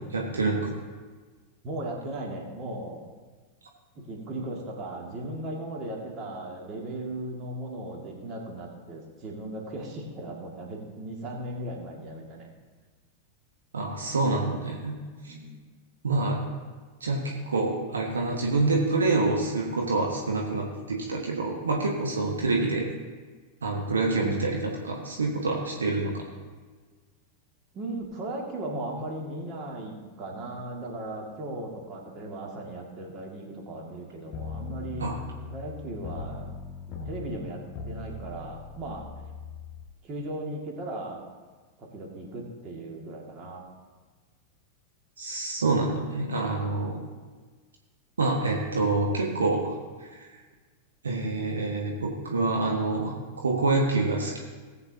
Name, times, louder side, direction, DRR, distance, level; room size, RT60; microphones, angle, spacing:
voice 1, 0.1-0.7 13.7-14.9 15.2-15.3 16.0-16.4 17.0-22.9 23.6-26.2 35.0-35.2 45.2-47.0 48.2-49.7 50.0-50.1 51.0-54.4, right 3 dB, 70° right, -1 dB, 1.3 m, -27 dB
voice 2, 1.6-3.0 4.0-12.5 15.3-15.6 27.7-35.1 35.5-36.5 37.0-39.1 40.0-41.2 41.8-43.7, right 1 dB, 30° right, -1 dB, 2.1 m, -37 dB
sound 1, 34.3-39.8, left 4 dB, 35° left, 1.8 m, -39 dB
18.5 x 8.0 x 2.8 m, 1.4 s
figure-of-eight pair, 90°, 0 cm